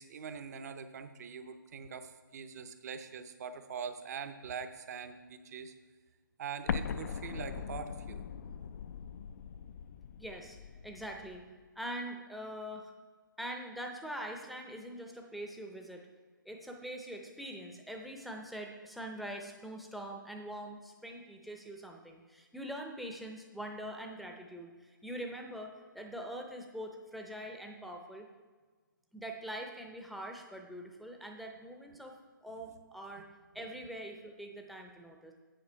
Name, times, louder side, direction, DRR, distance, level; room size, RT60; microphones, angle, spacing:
voice 1, 0.0-5.7 6.4-8.2, right 6 dB, 50° right, 9 dB, 0.7 m, -43 dB
Explosion, 6.7-11.4, left 7 dB, 50° left, 0.4 m, -40 dB
voice 2, 10.2-10.6 10.8-11.4 11.8-12.9 13.4-16.1 16.5-28.3 29.1-32.1 32.4-33.3 33.5-35.3, equal, ahead, 1 dB, 0.6 m, -43 dB
8.9 x 6.6 x 4.5 m, 1.4 s
hypercardioid pair, 150°, 11 cm